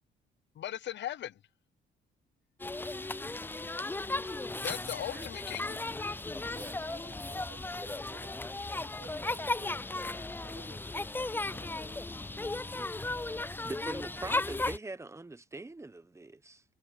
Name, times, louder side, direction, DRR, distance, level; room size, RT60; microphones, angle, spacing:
voice 1, 0.6-1.4 4.6-5.8, left 12 dB, 65° left, 0.9 m, -38 dB
sound 1, 2.6-14.8, left 2 dB, 10° left, 0.5 m, -36 dB
voice 2, 4.7-5.3 6.5-8.3 9.0-12.1, right 12 dB, 80° right, 7.2 m, -56 dB
voice 3, 13.6-16.6, right 2 dB, 15° right, 1.2 m, -42 dB
cardioid pair, 90°, 20 cm